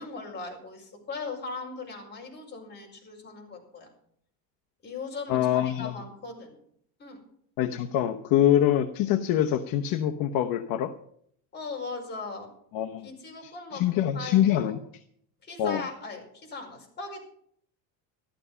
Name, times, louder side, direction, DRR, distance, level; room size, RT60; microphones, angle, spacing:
voice 1, 0.0-3.9 4.8-6.6 7.0-7.2 11.5-12.5 13.0-14.8 15.4-17.2, left 3 dB, 25° left, 0 dB, 5.2 m, -39 dB
voice 2, 5.3-5.9 7.6-10.9 12.7-13.1 13.4-14.8 15.6-15.8, left 11 dB, 55° left, 6 dB, 0.9 m, -25 dB
14.0 x 12.5 x 5.6 m, 0.66 s
cardioid pair, 155°, 43 cm